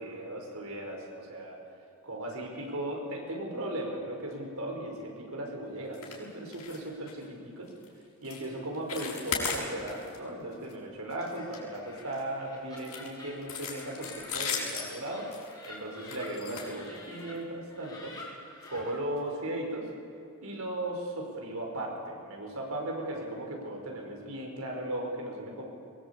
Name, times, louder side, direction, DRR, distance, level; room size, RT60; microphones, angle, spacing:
voice 1, 0.0-1.6 2.0-7.7 8.2-15.3 15.7-18.2 18.7-19.9 20.4-25.7, right 1 dB, 75° right, 1 dB, 5.4 m, -37 dB
sound 1, 5.9-6.2 6.5-6.8 7.1-7.2 7.7-7.9 8.2-8.5 8.7-10.2 10.5-10.7 11.1-12.2 12.8-17.4 18.1-18.3 18.6-18.7 19.2-19.3, left 6 dB, 85° left, 6.6 m, -37 dB
Laughter, 11.2-17.3 17.7-18.9, left 2 dB, 20° left, 5.1 m, -49 dB
22.5 x 21.0 x 8.5 m, 2.6 s
head